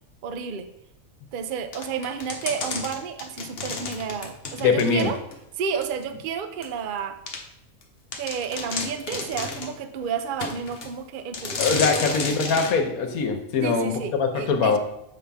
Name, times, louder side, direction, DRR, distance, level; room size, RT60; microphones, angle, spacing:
voice 1, 0.2-0.7 1.3-5.2 5.6-7.2 8.1-12.3 13.6-14.8, right 6 dB, 60° right, 8 dB, 0.5 m, -31 dB
sound 1, 1.7-5.4 5.8-5.9 6.6-6.7 7.3-7.4 7.8-7.9 8.1-9.8 10.4-10.9 11.3-12.8, left 4 dB, 45° left, 1.0 m, -32 dB
voice 2, 4.6-5.1 11.6-14.8, left 5 dB, 80° left, 5 dB, 1.3 m, -22 dB
7.3 x 5.6 x 3.5 m, 0.83 s
omnidirectional pair, 1.5 m